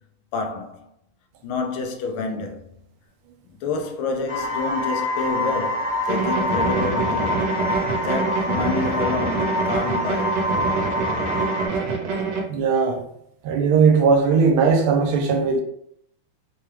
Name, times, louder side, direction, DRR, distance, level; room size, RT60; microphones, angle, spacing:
voice 1, 0.3-0.9 1.4-2.7 3.6-7.5 7.9-10.4, left 4 dB, 80° left, 1.4 m, -28 dB
sound 1, 4.3-11.7, left 1 dB, 60° left, 0.4 m, -26 dB
sound 2, 6.1-12.4, right 4 dB, 60° right, 1.3 m, -26 dB
voice 2, 12.5-13.0 13.4-15.6, right 5 dB, 85° right, 1.5 m, -18 dB
4.5 x 2.3 x 3.2 m
omnidirectional pair, 2.4 m